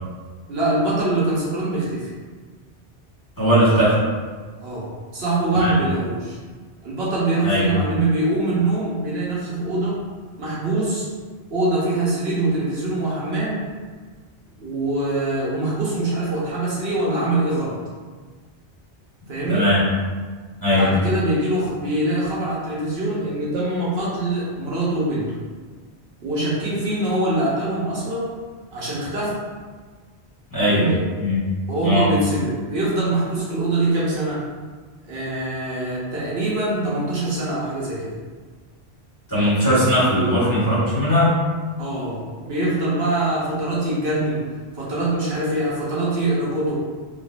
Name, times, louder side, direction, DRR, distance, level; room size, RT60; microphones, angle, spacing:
voice 1, 0.5-2.1 4.6-6.4 6.8-10.0 10.4-11.1 11.5-13.6 14.6-17.8 19.3-19.7 20.7-25.3 26.2-28.3 28.7-29.4 30.7-31.0 31.7-34.4 35.0-38.1 41.8-44.4 44.7-46.8, right 2 dB, 70° right, -6 dB, 1.1 m, -23 dB
voice 2, 3.4-4.0 5.6-5.8 7.4-7.7 19.5-19.8 20.6-20.9 30.5-30.8 31.2-31.4 31.8-32.0 39.3-41.3, equal, 20° left, -11 dB, 1.5 m, -18 dB
3.8 x 3.0 x 2.5 m, 1.5 s
omnidirectional pair, 1.1 m